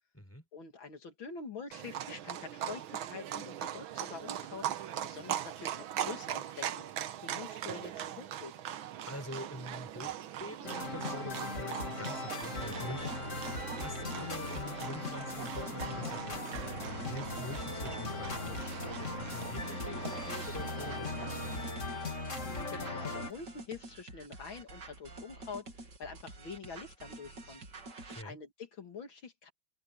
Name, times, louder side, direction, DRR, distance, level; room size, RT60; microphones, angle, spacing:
voice 1, 0.5-6.9 7.2-8.5 22.4-27.6 28.1-29.5, left 5 dB, 75° left, 3.0 m, -46 dB
Livestock farm animals working animals, 1.7-21.7, right 11 dB, 90° right, 1.8 m, -41 dB
voice 2, 9.1-16.6 16.8-18.6 19.0-21.8 28.1-28.4, left 1 dB, 5° left, 5.2 m, -46 dB
sound 1, 10.6-23.3, left 3 dB, 35° left, 3.4 m, -39 dB
sound 2, 12.6-28.2, right 2 dB, 60° right, 3.2 m, -49 dB
omnidirectional pair, 2.2 m